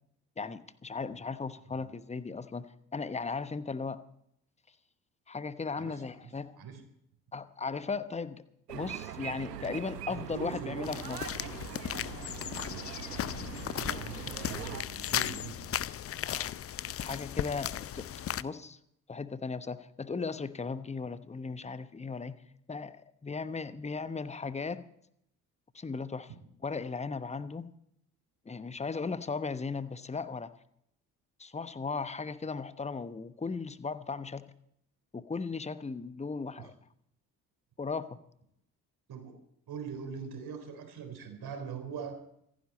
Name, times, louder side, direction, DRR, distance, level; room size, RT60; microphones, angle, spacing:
voice 1, 0.4-4.0 5.3-6.6 7.3-8.4 8.7-11.2 16.2-16.5 17.0-18.1 18.4-18.8 19.1-22.4 22.7-24.9 25.7-26.3 26.6-27.7 28.4-30.5 31.4-34.5 35.1-36.7 37.8-38.2, left 4 dB, 15° left, 14 dB, 1.0 m, -37 dB
voice 2, 5.8-6.3 6.6-6.8 10.1-10.9 13.5-15.8 36.6-36.7 39.1-39.4 39.7-42.2, right 6 dB, 50° right, 6 dB, 3.9 m, -42 dB
sound 1, 8.7-14.8, right 10 dB, 85° right, 0.9 m, -42 dB
Schritte Kies, 10.8-18.4, left 10 dB, 30° left, 0.6 m, -36 dB
26.0 x 10.5 x 4.2 m, 0.74 s
figure-of-eight pair, 45°, 47 cm